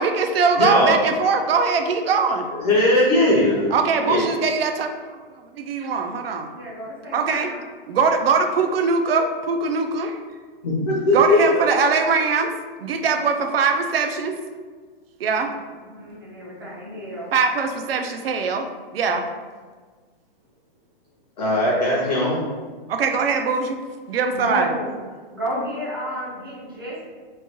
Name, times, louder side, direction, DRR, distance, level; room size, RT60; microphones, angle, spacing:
voice 1, 0.0-2.5 3.7-5.2 5.5-6.5 7.1-7.5 7.9-10.2 11.1-12.5 12.8-14.4 15.2-15.5 17.3-18.7 18.9-19.2 22.9-23.8 24.1-24.7, right 4 dB, 80° right, 5 dB, 0.5 m, -21 dB
voice 2, 0.6-1.0 2.5-3.7 4.0-4.2 10.6-11.6 21.4-22.5, left 1 dB, 45° left, -5 dB, 0.6 m, -19 dB
voice 3, 3.9-4.4 6.5-7.6 15.8-17.3 24.3-24.9 25.3-27.0, equal, 25° right, -6 dB, 0.4 m, -32 dB
3.1 x 2.2 x 2.8 m, 1.4 s
hypercardioid pair, 180°, 29 cm